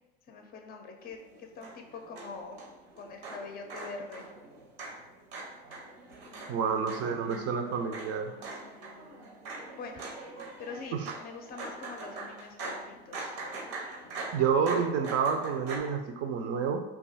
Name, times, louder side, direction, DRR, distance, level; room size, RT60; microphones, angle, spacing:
voice 1, 0.3-2.6 3.0-4.3 6.3-7.6 8.0-9.2 9.7-10.1 10.6-13.3, left 4 dB, 30° left, 4 dB, 0.5 m, -45 dB
sound 1, 1.0-15.8, right 3 dB, 75° right, 0.9 m, -43 dB
voice 2, 6.5-8.3 10.9-11.1 14.3-16.8, right 6 dB, 50° right, 5 dB, 0.5 m, -29 dB
2.6 x 2.3 x 4.0 m, 1.0 s
hypercardioid pair, 75°, 32 cm